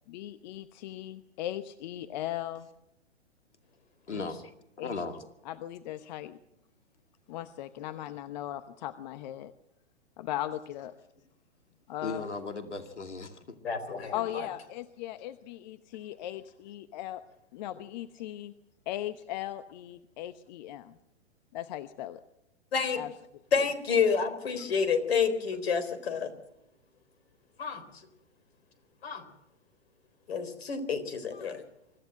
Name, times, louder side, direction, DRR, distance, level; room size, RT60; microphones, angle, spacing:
voice 1, 0.1-2.7 4.1-4.3 4.8-4.9 5.4-6.4 7.3-9.5 10.2-10.9 11.9-12.3 14.1-17.2 17.5-18.5 18.9-21.0 21.5-22.2 22.9-23.1 23.6-23.7, left 13 dB, 40° left, 13 dB, 1.0 m, -38 dB
voice 2, 4.1-4.4 4.8-5.2 12.0-13.6, left 3 dB, 80° left, 8 dB, 2.5 m, -36 dB
voice 3, 13.6-14.4 22.7-23.0 23.5-26.3 27.6-27.8 29.0-29.2 30.3-31.6, left 6 dB, 60° left, 12 dB, 3.9 m, -29 dB
24.5 x 14.5 x 7.6 m, 0.86 s
figure-of-eight pair, 115°, 34 cm